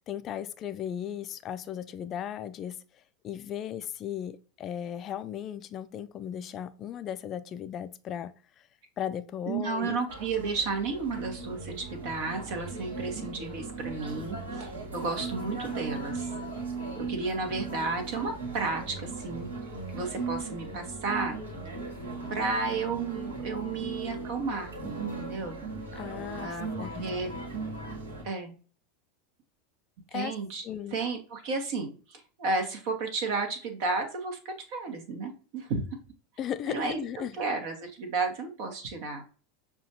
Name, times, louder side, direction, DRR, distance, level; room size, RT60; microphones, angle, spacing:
voice 1, 0.1-2.8 3.2-8.3 9.0-10.0 26.0-27.1 30.1-30.3 30.6-31.0 36.4-37.4, left 9 dB, 35° left, 0.3 m, -36 dB
voice 2, 9.4-16.3 17.0-19.5 19.9-21.4 22.3-25.6 26.4-27.3 28.2-28.5 30.1-30.6 30.9-35.8 36.7-37.0 37.4-39.4, right 4 dB, 55° right, 0.9 m, -32 dB
sound 1, 10.1-28.2, right 3 dB, 80° right, 1.3 m, -38 dB
6.1 x 2.3 x 2.7 m
figure-of-eight pair, 85°, 0 cm